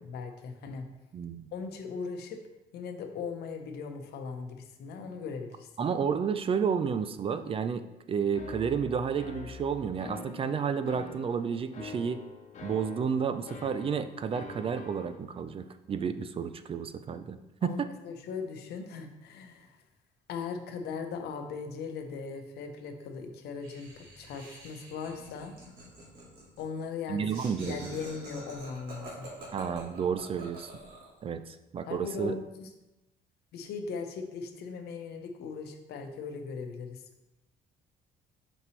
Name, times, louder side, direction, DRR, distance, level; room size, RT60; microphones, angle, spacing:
voice 1, 0.0-0.9 1.5-2.4 2.7-5.9 17.6-19.7 20.3-25.5 26.6-27.2 27.5-29.3 31.8-32.7 33.5-37.0, left 5 dB, 75° left, 5 dB, 0.8 m, -39 dB
voice 2, 1.1-1.5 5.8-7.8 8.1-12.2 12.6-17.9 27.1-27.9 29.5-30.7 31.2-32.4, right 6 dB, 35° right, 10 dB, 0.4 m, -31 dB
sound 1, 8.3-15.2, left 4 dB, 45° left, 1.0 m, -45 dB
Laughter, 23.6-31.2, right 1 dB, 60° right, 2.1 m, -47 dB
5.6 x 5.3 x 3.2 m, 0.96 s
cardioid pair, 110°, 17 cm